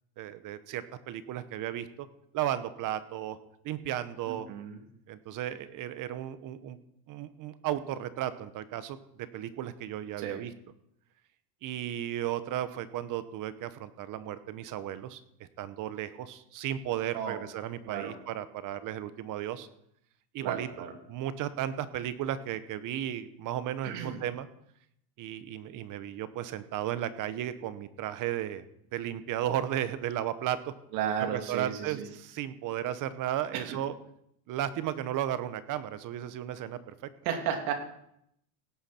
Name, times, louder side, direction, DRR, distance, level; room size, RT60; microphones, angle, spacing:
voice 1, 0.2-2.1 2.3-3.4 3.6-4.5 5.1-6.8 7.1-9.0 9.3-10.5 11.6-19.7 20.3-20.7 21.1-24.5 25.2-28.6 28.9-30.7 31.3-33.9 34.5-36.9, right 11 dB, 40° right, 13 dB, 0.9 m, -34 dB
voice 2, 4.3-4.8 10.2-10.4 17.1-17.4 17.8-18.2 20.4-20.9 23.8-24.2 30.9-32.1 33.5-33.8 37.2-37.7, right 8 dB, 70° right, 4 dB, 2.7 m, -34 dB
17.5 x 9.5 x 4.3 m, 0.75 s
supercardioid pair, 140°, 49 cm